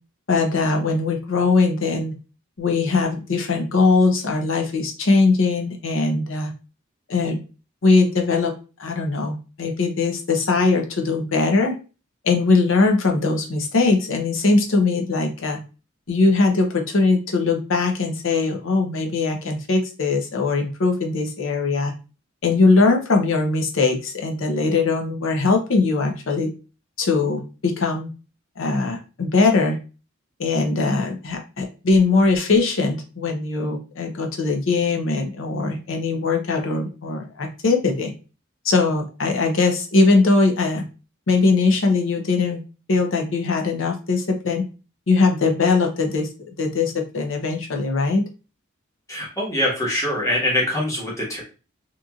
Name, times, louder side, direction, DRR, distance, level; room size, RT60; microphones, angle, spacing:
voice 1, 0.3-2.2 2.6-6.5 7.1-7.4 7.8-8.5 8.8-11.8 12.2-15.6 16.1-21.9 22.4-26.5 27.0-28.1 28.6-29.8 30.4-38.1 38.6-40.8 41.3-42.6 42.9-44.6 45.1-46.3 46.6-48.2, left 3 dB, 70° left, 3 dB, 0.6 m, -20 dB
voice 2, 49.1-51.4, left 1 dB, 15° left, -4 dB, 1.1 m, -23 dB
2.9 x 2.5 x 2.3 m, 0.33 s
head